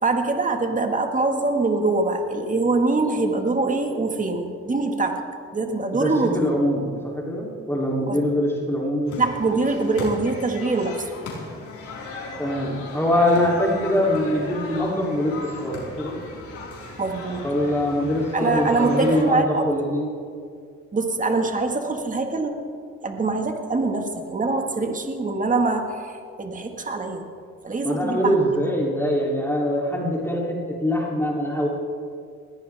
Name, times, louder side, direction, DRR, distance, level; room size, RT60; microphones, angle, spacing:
voice 1, 0.0-5.2 5.5-6.5 8.1-8.2 9.2-11.1 17.0-17.5 18.3-19.7 20.9-22.5 23.0-27.3 27.6-28.4, right 3 dB, 25° right, 4 dB, 1.9 m, -24 dB
voice 2, 5.9-9.2 12.4-16.2 17.4-20.1 27.8-31.7, left 1 dB, 10° left, -3 dB, 3.2 m, -23 dB
sound 1, 9.1-19.2, left 3 dB, 75° left, 4.6 m, -37 dB
21.0 x 16.5 x 3.6 m, 2.2 s
cardioid pair, 90°, 30 cm